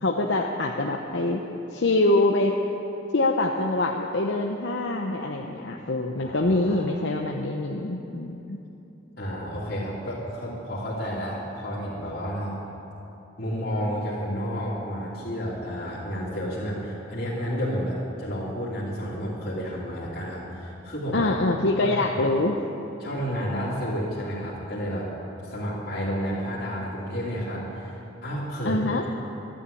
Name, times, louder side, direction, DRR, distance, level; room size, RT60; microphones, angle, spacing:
voice 1, 0.0-1.4 1.7-2.6 3.1-8.6 21.1-22.6 28.6-29.0, left 2 dB, 85° left, 1 dB, 0.9 m, -24 dB
voice 2, 6.2-6.8 9.2-12.6 13.4-21.3 21.8-22.0 23.0-25.1 25.4-28.8, equal, 60° left, -9 dB, 3.0 m, -31 dB
12.5 x 11.5 x 8.5 m, 2.9 s
head